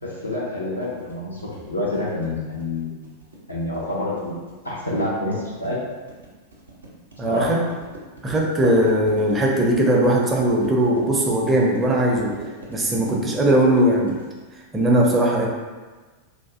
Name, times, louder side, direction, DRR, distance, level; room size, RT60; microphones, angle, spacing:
voice 1, 0.0-3.1 3.5-4.3 4.6-5.8 7.3-7.6, left 1 dB, 90° left, -7 dB, 0.6 m, -27 dB
sound 1, 0.8-14.5, right 2 dB, 75° right, 0.5 m, -38 dB
voice 2, 7.2-7.6 8.2-12.3 12.7-14.2 14.7-15.5, right 1 dB, 15° right, -1 dB, 0.4 m, -19 dB
2.4 x 2.3 x 2.4 m, 1.3 s
figure-of-eight pair, 90°, 0 cm